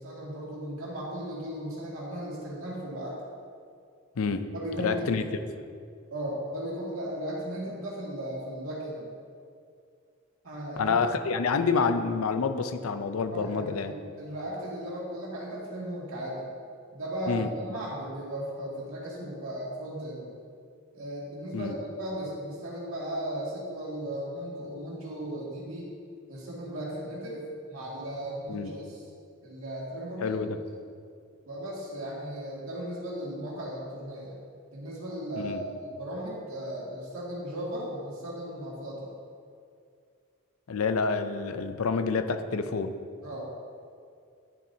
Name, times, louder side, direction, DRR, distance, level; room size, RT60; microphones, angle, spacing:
voice 1, 0.0-3.1 4.5-5.2 6.1-9.1 10.4-11.0 13.3-16.5 16.9-20.3 20.9-25.9 26.3-29.0 29.4-30.4 31.5-34.4 34.7-39.1 43.2-43.5, equal, 80° right, -5 dB, 2.2 m, -36 dB
voice 2, 4.2-4.5 4.8-5.2 10.8-13.9 17.3-17.5 21.5-21.8 28.5-28.7 30.2-30.6 35.4-35.6 40.7-42.9, left 4 dB, 85° left, 9 dB, 0.5 m, -28 dB
10.0 x 7.3 x 2.8 m, 2.3 s
head